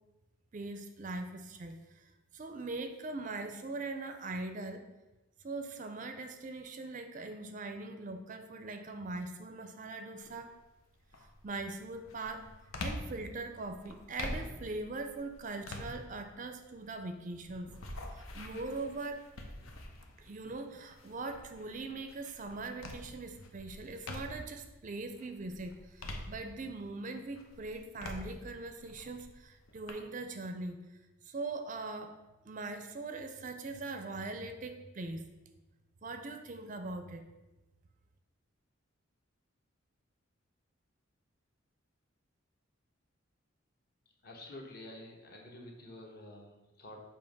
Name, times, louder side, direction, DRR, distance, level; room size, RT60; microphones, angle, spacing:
voice 1, 0.5-4.9 5.4-10.5 11.4-12.5 12.8-17.7 18.1-19.2 20.2-30.8 31.2-32.2 32.4-35.2 36.0-37.3, right 3 dB, 35° right, 7 dB, 0.4 m, -41 dB
sound 1, 10.2-10.6 11.1-24.6 25.1-26.9 27.3-29.9, left 1 dB, 85° left, 0.9 m, -46 dB
voice 2, 44.2-47.0, left 1 dB, 45° left, 0 dB, 1.0 m, -49 dB
7.0 x 3.0 x 5.2 m, 1.1 s
head